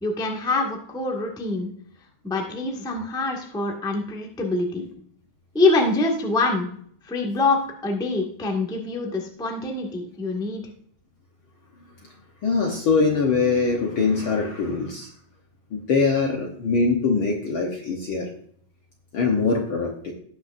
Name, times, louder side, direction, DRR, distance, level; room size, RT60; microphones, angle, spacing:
voice 1, 0.0-1.7 2.2-4.8 5.5-6.7 7.1-10.6, left 3 dB, 5° left, 0 dB, 0.9 m, -25 dB
voice 2, 12.4-15.1 15.7-18.3 19.1-20.1, left 4 dB, 60° left, 1 dB, 1.4 m, -23 dB
18.5 x 6.2 x 2.6 m, 0.62 s
omnidirectional pair, 3.5 m